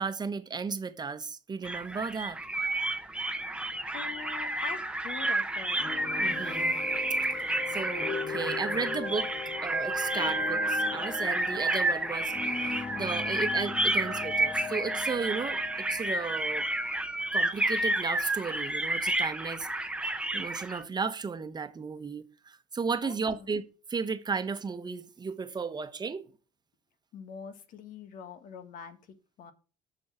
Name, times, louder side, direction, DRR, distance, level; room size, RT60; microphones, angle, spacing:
voice 1, 0.0-2.4 6.2-6.8 7.7-9.3 9.6-15.6 15.9-16.7 17.3-19.7 20.3-23.6 23.9-26.2, right 5 dB, 30° right, 1.2 m, -34 dB
sound 1, 1.6-20.8, right 2 dB, 5° right, 0.9 m, -30 dB
voice 2, 3.9-6.0 23.0-23.5 27.1-29.5, left 6 dB, 65° left, 1.7 m, -44 dB
sound 2, 5.7-17.0, left 6 dB, 25° left, 0.5 m, -39 dB
9.5 x 6.4 x 6.2 m
cardioid pair, 100°, 15 cm